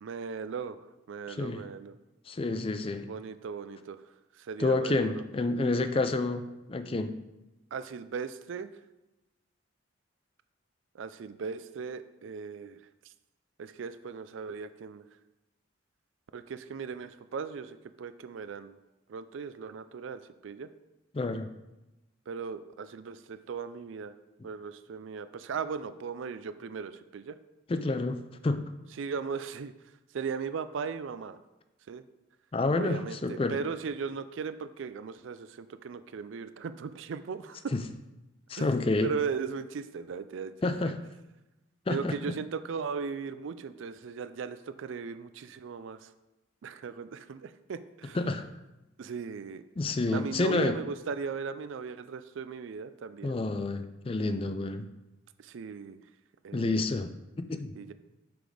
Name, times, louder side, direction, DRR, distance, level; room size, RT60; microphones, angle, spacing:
voice 1, 0.0-2.0 3.0-4.0 4.3-5.2 7.7-8.7 10.9-12.8 13.0-13.1 13.6-15.1 16.3-18.8 19.1-20.7 22.3-24.1 24.4-27.4 29.0-29.7 30.1-31.4 31.9-32.0 32.7-37.7 38.6-38.7 39.0-40.9 41.9-46.1 46.6-48.2 49.0-49.6 50.1-53.4 55.4-56.0 56.4-56.9 57.7-57.9, right 5 dB, 70° right, 13 dB, 0.4 m, -37 dB
voice 2, 1.3-1.6 2.3-3.1 4.6-7.1 21.1-21.5 27.7-28.7 32.5-33.6 37.7-37.8 38.5-39.1 40.6-41.0 41.9-42.2 48.1-48.5 49.8-50.8 53.2-54.9 56.5-57.1 57.5-57.7, left 2 dB, 25° left, 9 dB, 0.4 m, -29 dB
6.0 x 5.1 x 4.9 m, 1.0 s
head